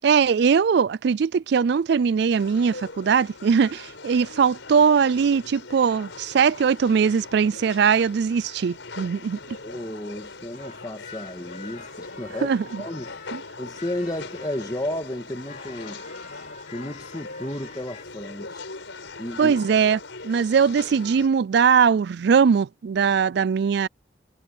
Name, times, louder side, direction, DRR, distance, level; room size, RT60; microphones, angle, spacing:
voice 1, 0.0-9.4 12.4-12.8 13.3-13.4 19.4-23.9, right 6 dB, 55° right, 0.3 m, -21 dB
sound 1, 2.4-21.3, left 3 dB, 70° left, 5.1 m, -41 dB
voice 2, 9.6-13.2 13.6-16.0 16.7-18.6 19.2-19.6, left 1 dB, 20° left, 2.1 m, -33 dB
sound 2, 10.5-15.0 15.4-18.0, left 4 dB, 40° left, 5.5 m, -47 dB
head